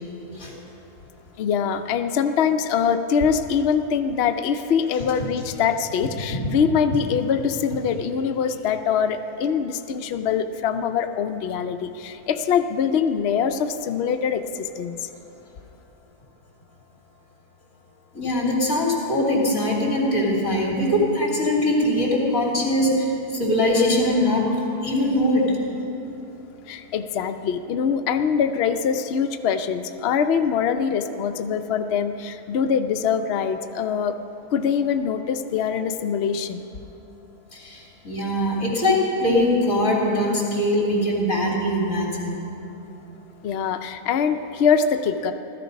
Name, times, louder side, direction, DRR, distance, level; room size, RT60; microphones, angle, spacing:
voice 1, 1.4-15.0 26.7-34.1 34.5-36.7 43.4-45.3, left 7 dB, 70° left, 7 dB, 0.6 m, -23 dB
voice 2, 18.1-24.5 24.8-25.5 37.5-42.4, left 1 dB, 55° left, -3 dB, 3.3 m, -22 dB
16.5 x 13.5 x 5.2 m, 3.0 s
omnidirectional pair, 1.7 m